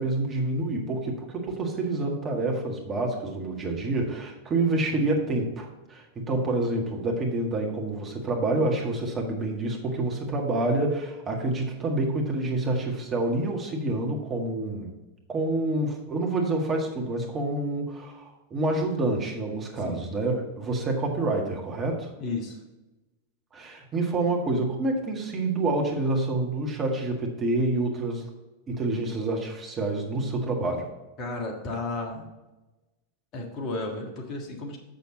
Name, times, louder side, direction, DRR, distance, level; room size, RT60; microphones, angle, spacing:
voice 1, 0.0-14.9 15.3-22.1 23.5-28.3 28.7-30.9, right 2 dB, 25° right, 1 dB, 1.7 m, -27 dB
voice 2, 22.2-22.6 31.2-32.2 33.3-34.8, left 2 dB, 35° left, 1 dB, 1.6 m, -33 dB
7.6 x 6.7 x 4.0 m, 1.1 s
figure-of-eight pair, 90°, 0 cm